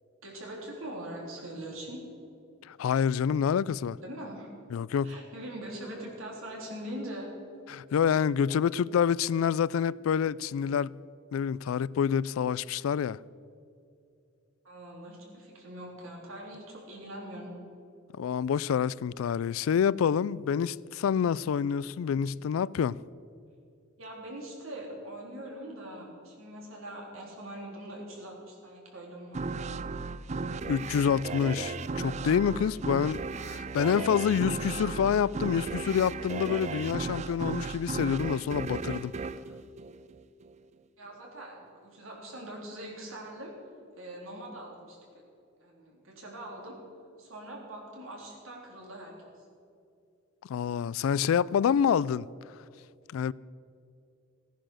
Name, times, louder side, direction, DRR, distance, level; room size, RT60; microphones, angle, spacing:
voice 1, 0.2-2.0 4.0-4.5 5.0-7.3 14.6-17.5 24.0-29.5 41.0-43.5 44.0-45.0 45.6-46.7 47.2-49.3, right 1 dB, 90° right, 3.6 m, -42 dB
voice 2, 2.7-4.0 4.7-5.2 7.7-10.9 11.3-13.2 18.2-23.0 30.7-33.2 33.5-39.1 50.5-52.3 53.1-53.3, left 7 dB, 90° left, 0.3 m, -27 dB
sound 1, 29.3-40.5, right 4 dB, 35° right, 0.4 m, -35 dB
16.0 x 10.5 x 6.4 m
head